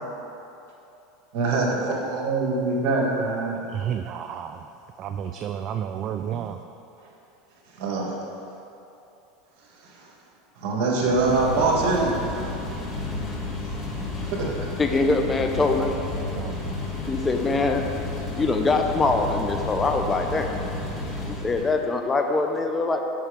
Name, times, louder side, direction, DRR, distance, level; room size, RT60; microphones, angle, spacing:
voice 1, 1.3-3.6 7.7-8.1 9.8-10.1 10.6-12.5 14.3-14.5, right 3 dB, 60° right, -1 dB, 1.8 m, -24 dB
voice 2, 3.7-4.7 5.0-6.6 16.4-16.9, right 9 dB, 45° right, 7 dB, 0.3 m, -31 dB
sound 1, 11.0-21.8, left 2 dB, 35° left, 1.7 m, -32 dB
voice 3, 14.8-16.1 17.1-17.8 18.3-20.5 21.4-23.0, left 3 dB, 20° left, 4 dB, 0.7 m, -23 dB
7.3 x 5.9 x 5.2 m, 2.8 s
hypercardioid pair, 100°, 0 cm